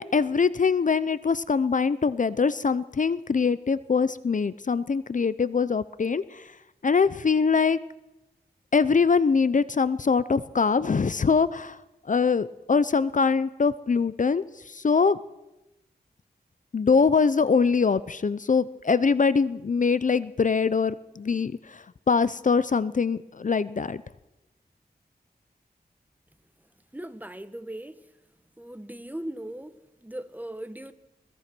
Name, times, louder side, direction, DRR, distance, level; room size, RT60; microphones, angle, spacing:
voice 1, 0.0-6.5 6.8-7.8 8.7-11.8 12.1-15.2 16.7-24.0, left 5 dB, 50° left, 0.6 m, -23 dB
voice 2, 26.9-28.0 28.6-30.9, right 1 dB, 10° right, 1.1 m, -38 dB
21.5 x 20.0 x 6.1 m
wide cardioid pair, 75°, 17 cm